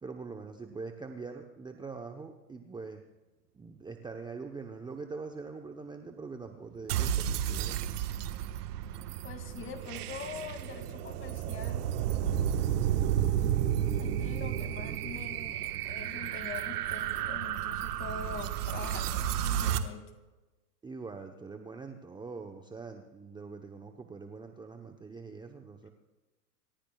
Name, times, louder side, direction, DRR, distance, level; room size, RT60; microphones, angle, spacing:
voice 1, 0.0-3.0 3.5-7.8 20.8-25.9, right 4 dB, 10° right, 4 dB, 1.0 m, -43 dB
sound 1, 6.9-19.8, right 10 dB, 65° right, 1.5 m, -32 dB
voice 2, 9.2-11.8 14.0-20.1, left 6 dB, 25° left, 6 dB, 2.5 m, -44 dB
27.5 x 15.0 x 2.4 m, 1.1 s
hypercardioid pair, 115°, 48 cm